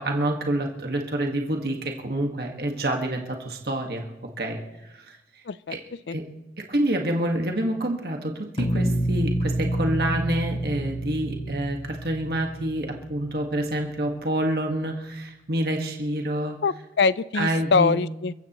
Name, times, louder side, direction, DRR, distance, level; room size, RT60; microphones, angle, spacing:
voice 1, 0.0-4.0 4.4-4.6 4.9-5.2 5.7-5.8 6.1-6.2 6.6-16.6 17.3-18.0, right 1 dB, 60° right, 2 dB, 1.7 m, -27 dB
sound 1, 8.6-13.5, right 1 dB, 30° left, 0.9 m, -28 dB
voice 2, 16.6-18.3, left 4 dB, 75° left, 18 dB, 0.5 m, -23 dB
29.5 x 15.0 x 3.1 m, 0.94 s
head